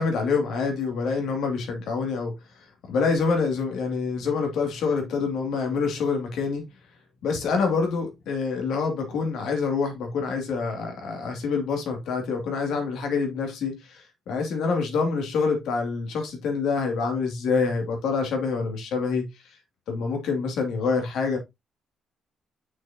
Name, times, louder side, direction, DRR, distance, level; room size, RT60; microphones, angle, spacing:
voice 1, 0.0-2.4 2.8-6.7 7.2-19.6 19.9-21.4, left 4 dB, 80° left, 2.4 m, -26 dB
6.4 x 6.3 x 2.8 m
cardioid pair, 90°, 0 cm